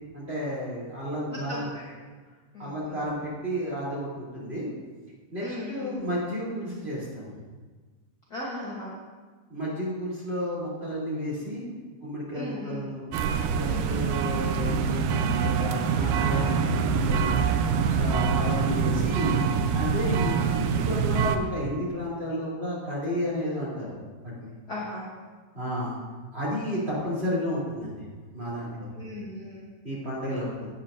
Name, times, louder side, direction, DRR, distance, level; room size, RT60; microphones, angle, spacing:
voice 1, 0.1-1.7 2.6-4.7 5.3-7.3 9.5-11.6 12.0-13.0 13.5-17.4 17.9-19.4 19.7-23.9 24.4-24.5 25.5-26.0 26.3-28.0 28.3-28.9 29.8-30.7, equal, 20° right, -7 dB, 3.2 m, -32 dB
voice 2, 1.3-1.9 2.5-3.0 5.4-6.0 8.3-8.9 12.3-12.9 13.7-14.0 16.1-16.5 17.1-17.5 18.2-18.5 24.7-25.1 29.0-29.7, left 2 dB, 65° left, -6 dB, 0.9 m, -38 dB
sound 1, 13.1-21.4, right 6 dB, 80° right, 2.1 m, -25 dB
12.5 x 8.6 x 2.6 m, 1.4 s
omnidirectional pair, 3.7 m